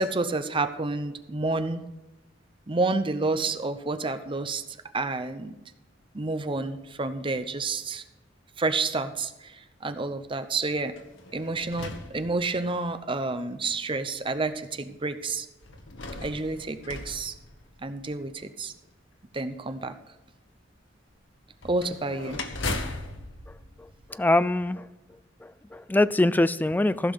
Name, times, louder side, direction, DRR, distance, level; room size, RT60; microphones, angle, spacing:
voice 1, 0.0-1.8 2.7-4.6 4.9-5.5 6.1-8.0 8.6-10.9 11.3-15.5 16.2-17.3 17.8-18.7 19.3-19.9 21.6-22.4, right 3 dB, 25° right, 10 dB, 0.7 m, -29 dB
sound 1, 10.9-12.9 13.7-13.8 15.6-18.2 21.6-24.7, left 2 dB, 90° left, 1.4 m, -38 dB
voice 2, 23.8-24.9 25.4-27.1, left 2 dB, 10° left, 15 dB, 0.3 m, -24 dB
15.0 x 6.0 x 6.5 m, 1.0 s
head